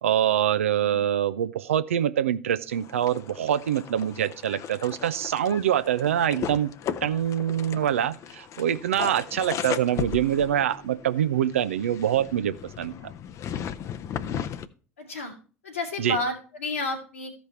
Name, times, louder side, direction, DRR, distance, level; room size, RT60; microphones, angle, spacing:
voice 1, 0.0-6.7 7.0-12.9 16.0-16.2, right 10 dB, 80° right, 14 dB, 0.5 m, -25 dB
sound 1, 2.7-14.7, left 9 dB, 45° left, 0.7 m, -36 dB
voice 2, 15.0-15.3 15.6-17.3, left 2 dB, 85° left, 0 dB, 2.5 m, -31 dB
14.0 x 5.3 x 4.3 m, 0.37 s
figure-of-eight pair, 65°, 7 cm